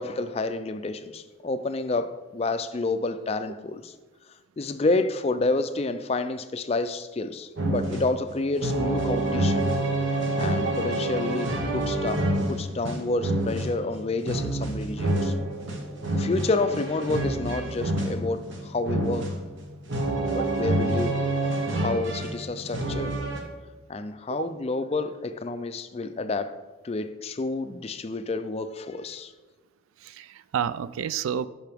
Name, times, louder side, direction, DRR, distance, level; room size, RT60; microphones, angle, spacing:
voice 1, 0.0-3.9 4.6-9.7 10.4-15.3 16.1-19.3 20.3-21.2 21.8-23.1 23.9-29.3, left 3 dB, 30° left, 10 dB, 0.4 m, -29 dB
sound 1, 7.6-23.4, right 1 dB, 70° right, 1.2 m, -27 dB
voice 2, 30.0-31.5, right 8 dB, 90° right, 16 dB, 0.3 m, -30 dB
10.5 x 5.7 x 3.5 m, 1.2 s
head